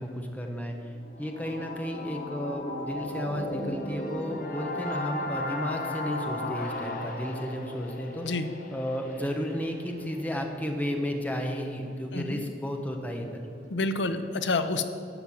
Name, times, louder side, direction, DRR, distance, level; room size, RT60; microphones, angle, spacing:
voice 1, 0.0-8.3 8.7-13.4, equal, 10° left, 3 dB, 1.0 m, -33 dB
sound 1, 1.0-10.8, left 1 dB, 50° left, 1.0 m, -36 dB
voice 2, 13.7-14.8, left 3 dB, 85° left, 9 dB, 0.7 m, -28 dB
12.0 x 5.9 x 7.1 m, 2.7 s
head